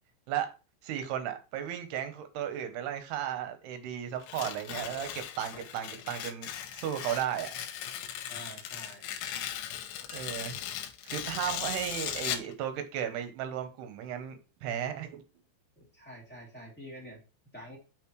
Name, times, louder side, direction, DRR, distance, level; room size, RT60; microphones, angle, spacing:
voice 1, 0.8-7.5 10.1-10.6 11.0-15.2, right 10 dB, 75° right, 2.7 m, -35 dB
Tearing, 4.2-12.5, left 11 dB, 80° left, 3.1 m, -38 dB
voice 2, 8.3-9.1 15.7-17.2 17.5-17.8, equal, 5° left, 1.0 m, -47 dB
sound 1, 10.0-10.6 11.5-11.6 12.0-12.6 13.1-13.4 14.0-14.3 14.8-16.1, right 1 dB, 30° right, 3.0 m, -58 dB
7.2 x 5.9 x 3.1 m
omnidirectional pair, 5.3 m